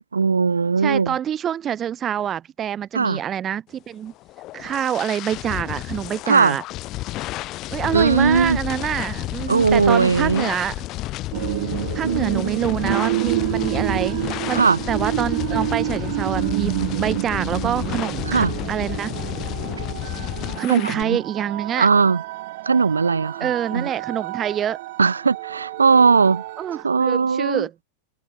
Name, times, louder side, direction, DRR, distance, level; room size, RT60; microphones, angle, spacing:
voice 1, 0.0-1.1 2.9-3.2 6.3-6.6 7.9-8.6 9.5-10.5 12.0-12.5 14.5-14.8 18.3-18.5 20.7-21.2 21.8-22.2 22.6-23.9 25.0-26.4 26.8-27.7, right 5 dB, 75° right, 6.6 m, -19 dB
voice 2, 0.8-4.1 4.5-6.6 7.7-10.8 11.9-14.6 14.9-19.1 20.6-21.9 23.4-24.8 26.6-27.7, right 9 dB, 25° right, 2.2 m, -26 dB
sound 1, 4.1-21.0, left 17 dB, 35° left, 5.3 m, -31 dB
sound 2, 11.3-26.8, right 19 dB, 50° right, 7.0 m, -29 dB
figure-of-eight pair, 90°, 0 cm